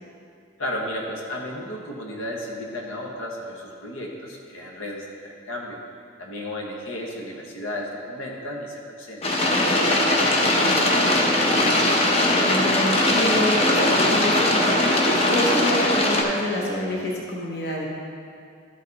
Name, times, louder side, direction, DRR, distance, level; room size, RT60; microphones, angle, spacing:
voice 1, 0.6-5.8 6.2-11.8, left 1 dB, 90° left, -1 dB, 1.2 m, -34 dB
sound 1, 9.2-16.2, left 1 dB, 30° left, 0.7 m, -20 dB
voice 2, 12.4-17.9, left 1 dB, 50° left, -2 dB, 1.0 m, -27 dB
12.5 x 4.9 x 4.1 m, 2.3 s
head